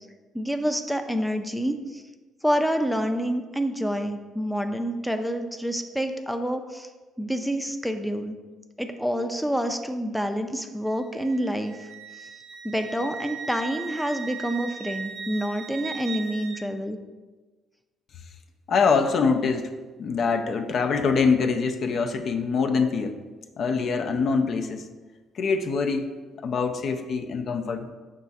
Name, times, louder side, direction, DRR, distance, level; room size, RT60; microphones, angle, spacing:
voice 1, 0.3-2.0 2.4-6.9 7.2-8.4 8.8-11.9 12.1-12.3 12.6-17.0, equal, ahead, 6 dB, 0.4 m, -28 dB
Wind instrument woodwind instrument, 10.9-16.6, right 5 dB, 70° right, 0.5 m, -38 dB
voice 2, 18.7-19.7 20.0-23.2 23.6-24.9 25.3-26.1 26.4-27.9, left 5 dB, 60° left, 5 dB, 0.4 m, -24 dB
5.4 x 2.4 x 4.0 m, 1.3 s
supercardioid pair, 65°, 0 cm